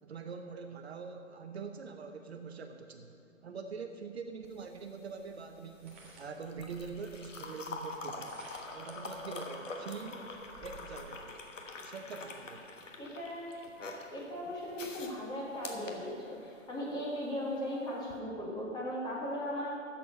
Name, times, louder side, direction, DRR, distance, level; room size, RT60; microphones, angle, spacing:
voice 1, 0.0-3.1 3.4-8.4 8.7-10.2 10.6-11.4 11.8-12.7, right 5 dB, 55° right, 6 dB, 0.8 m, -44 dB
sound 1, 4.4-16.7 18.0-18.2, left 3 dB, 70° left, 1.4 m, -45 dB
sound 2, 4.4-4.5 5.7-7.1 8.0-8.9 9.5-9.6 9.9-11.0, right 2 dB, 10° right, 0.4 m, -55 dB
voice 2, 13.0-13.5 14.1-19.7, equal, 10° left, -5 dB, 1.9 m, -38 dB
11.5 x 7.3 x 5.3 m, 2.8 s
figure-of-eight pair, 130°, 39 cm